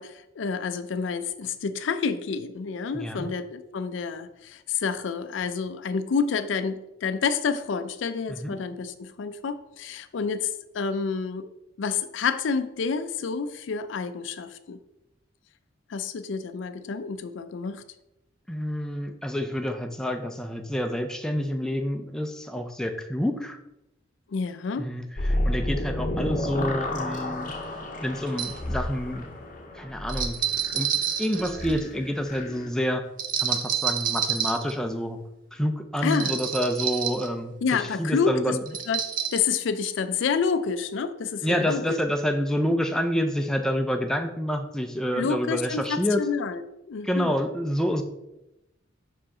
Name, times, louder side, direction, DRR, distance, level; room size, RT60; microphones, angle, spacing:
voice 1, 0.0-10.5 10.7-11.5 11.8-14.8 15.9-17.8 24.3-24.9 36.0-36.4 37.6-38.6 38.9-39.0 39.3-42.0 45.1-46.6 46.9-47.4, left 5 dB, 75° left, 0.4 m, -29 dB
voice 2, 2.9-3.3 8.3-8.5 18.5-23.6 24.8-27.5 28.0-29.3 29.7-30.4 30.7-30.9 31.2-33.0 33.4-35.2 35.5-38.6 41.4-46.2 47.0-48.0, equal, 5° left, 0.4 m, -28 dB
sound 1, 25.2-32.7, left 1 dB, 40° left, 0.7 m, -31 dB
Small cat collar bell, 27.4-27.5 28.3-28.6 30.1-31.9 33.2-34.7 36.1-37.3 38.7-39.4, right 8 dB, 45° right, 0.6 m, -28 dB
5.7 x 4.8 x 3.7 m
head